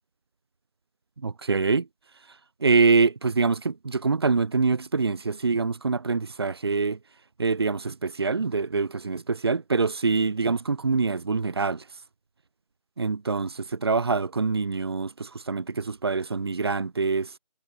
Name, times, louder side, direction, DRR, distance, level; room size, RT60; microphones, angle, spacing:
voice 1, 1.2-1.8 2.6-7.0 7.4-11.8 13.0-17.3, right 4 dB, 35° right, 7.4 m, -25 dB
figure-of-eight pair, 175°, 21 cm